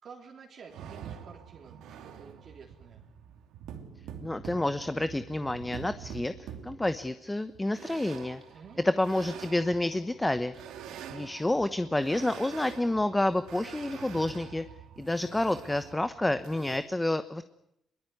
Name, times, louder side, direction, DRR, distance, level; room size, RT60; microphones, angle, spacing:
voice 1, 0.0-3.1 8.5-8.9 10.8-11.3, right 5 dB, 55° right, 0 dB, 3.7 m, -51 dB
sound 1, 0.7-16.8, right 8 dB, 90° right, 2.8 m, -46 dB
voice 2, 4.2-8.4 8.8-10.5 11.1-14.6 15.0-17.4, left 1 dB, 10° left, 11 dB, 1.1 m, -29 dB
22.0 x 20.5 x 9.4 m, 0.81 s
cardioid pair, 90°, 0 cm